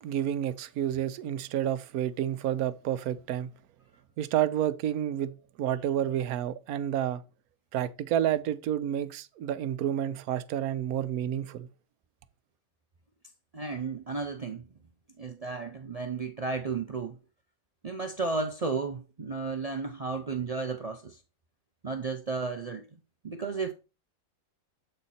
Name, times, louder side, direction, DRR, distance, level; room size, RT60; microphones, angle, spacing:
voice 1, 0.0-3.5 4.2-5.3 5.6-7.2 7.7-11.7, right 11 dB, 80° right, 1.1 m, -30 dB
voice 2, 13.5-14.6 15.2-17.2 17.8-21.2 21.8-22.9 23.2-23.7, right 4 dB, 50° right, 0.4 m, -33 dB
7.9 x 4.3 x 4.1 m
omnidirectional pair, 1.5 m